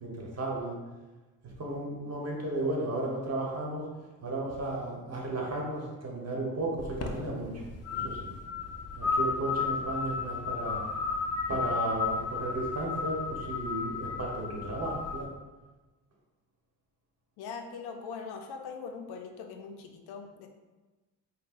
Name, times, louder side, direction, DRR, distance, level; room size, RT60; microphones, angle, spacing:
voice 1, 0.0-0.7 1.6-3.8 4.2-7.7 7.9-8.3 8.9-10.8 11.5-15.3, right 2 dB, 40° right, -2 dB, 1.1 m, -34 dB
sound 1, 6.8-15.2, left 5 dB, 40° left, 0.5 m, -33 dB
voice 2, 17.4-20.5, left 5 dB, 85° left, 4 dB, 0.5 m, -41 dB
5.3 x 2.2 x 2.5 m, 1.2 s
cardioid pair, 65°, 38 cm